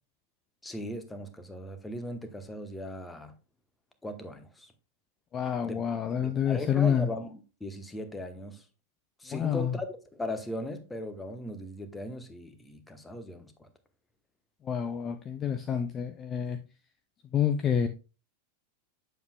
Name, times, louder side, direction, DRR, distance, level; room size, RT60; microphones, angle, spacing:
voice 1, 0.6-3.3 4.0-4.7 5.6-5.8 6.2-7.3 7.6-8.6 9.2-13.7, left 1 dB, 10° left, 1.0 m, -38 dB
voice 2, 5.3-7.1 9.3-9.8 14.6-16.6 17.3-17.9, left 8 dB, 25° left, 0.5 m, -28 dB
8.1 x 7.1 x 2.3 m
figure-of-eight pair, 90°, 0 cm